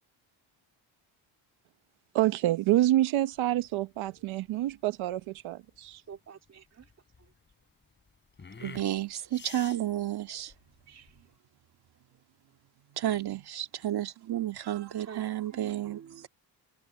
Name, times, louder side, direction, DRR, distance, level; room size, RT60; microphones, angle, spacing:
voice 1, 2.1-6.0, right 15 dB, 80° right, 1.0 m, -27 dB
sound 1, 3.3-11.4, left 5 dB, 25° left, 4.6 m, -51 dB
voice 2, 6.1-6.8 10.9-11.1 15.0-16.3, right 7 dB, 35° right, 3.0 m, -48 dB
voice 3, 8.6-10.5 13.0-16.0, right 12 dB, 55° right, 2.2 m, -31 dB
cardioid pair, 160°, 47 cm